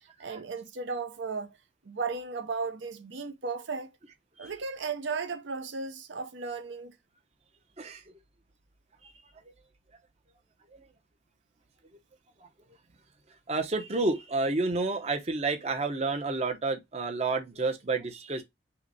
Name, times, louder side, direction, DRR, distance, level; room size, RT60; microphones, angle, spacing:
voice 1, 0.2-1.5 1.9-3.9 4.4-6.9, right 4 dB, 70° right, 0.6 m, -35 dB
voice 2, 13.5-18.4, right 3 dB, 35° right, 0.7 m, -30 dB
5.7 x 2.1 x 3.9 m
head